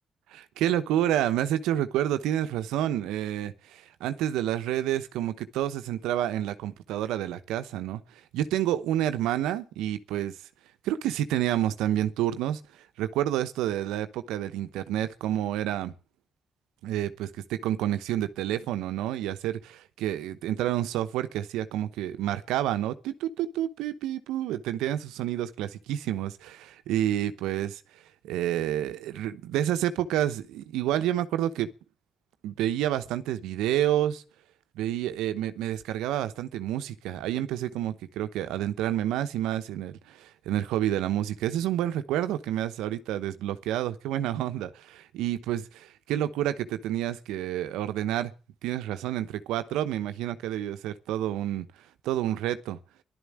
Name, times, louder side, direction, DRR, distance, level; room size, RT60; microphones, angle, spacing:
voice 1, 0.3-8.0 8.3-10.3 10.8-12.6 13.0-15.9 16.8-26.4 26.9-27.8 28.2-31.7 32.4-34.2 34.8-48.3 48.6-51.7 52.0-52.8, right 12 dB, 90° right, 0.9 m, -29 dB
12.0 x 11.5 x 8.5 m
supercardioid pair, 55°, 0 cm